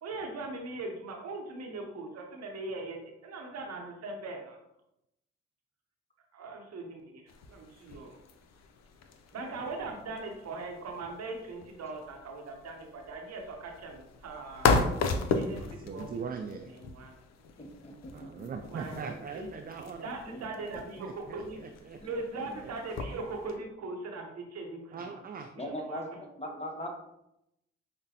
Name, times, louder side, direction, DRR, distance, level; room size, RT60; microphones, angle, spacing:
voice 1, 0.0-4.6 6.3-7.2 7.5-8.2 9.3-14.8 15.3-15.6 15.9-16.2 16.7-17.1 18.7-19.5 20.0-21.6 22.0-25.1 25.5-26.0, right 3 dB, 60° right, 3 dB, 0.8 m, -40 dB
sound 1, 7.3-23.6, left 4 dB, 65° left, 0.5 m, -36 dB
voice 2, 15.8-16.7 18.1-20.1 20.7-22.5 24.9-25.5, right 5 dB, 30° right, 5 dB, 0.4 m, -41 dB
voice 3, 17.6-18.5 20.3-20.4 22.0-22.1 25.6-26.1 26.4-26.9, equal, 20° left, 2 dB, 0.9 m, -39 dB
5.0 x 2.1 x 2.8 m, 0.83 s
supercardioid pair, 45°, 29 cm